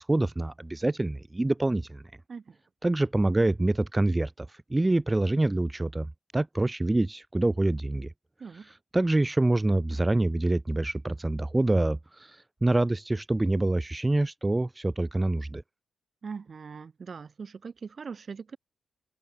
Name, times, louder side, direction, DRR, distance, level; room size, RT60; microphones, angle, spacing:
voice 1, 0.0-2.0 2.8-8.1 8.9-12.0 12.6-15.6, right 2 dB, 15° right, 0.4 m, -26 dB
voice 2, 16.2-18.6, right 5 dB, 40° right, 0.9 m, -41 dB
cardioid pair, 115°, 0 cm